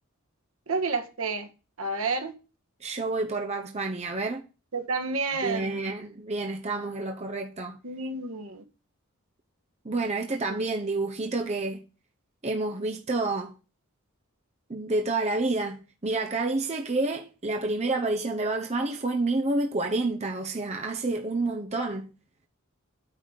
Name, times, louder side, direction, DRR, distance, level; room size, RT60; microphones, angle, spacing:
voice 1, 0.7-1.5 1.8-2.3 4.7-5.8 7.8-8.6 10.5-10.6, right 3 dB, 75° right, 1.5 m, -30 dB
voice 2, 2.8-4.4 5.4-7.8 9.8-11.8 12.4-13.5 14.7-22.1, right 2 dB, 30° right, 0.8 m, -29 dB
9.1 x 4.0 x 6.7 m
head